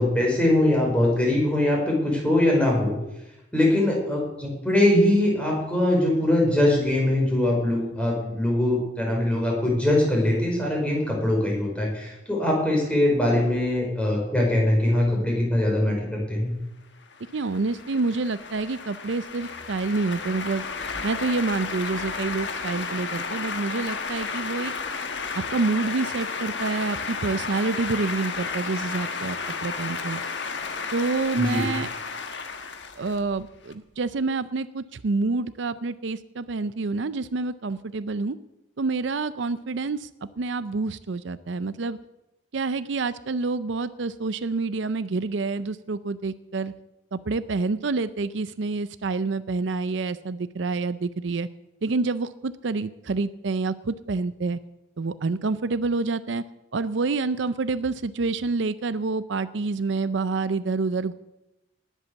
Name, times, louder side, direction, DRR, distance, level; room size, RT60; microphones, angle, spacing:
voice 1, 0.0-2.9 3.5-16.5 31.3-31.6, left 1 dB, 5° left, -2 dB, 5.1 m, -22 dB
sound 1, 17.1-33.7, left 5 dB, 60° left, 1.3 m, -33 dB
voice 2, 17.3-20.6 21.0-24.7 25.3-29.4 29.6-30.2 30.9-31.9 33.0-38.4 38.8-40.1 40.4-42.0 42.5-46.7 47.1-51.5 51.8-54.6 55.0-56.4 56.7-61.1, right 3 dB, 70° right, 14 dB, 0.5 m, -27 dB
19.5 x 8.3 x 7.0 m, 0.93 s
head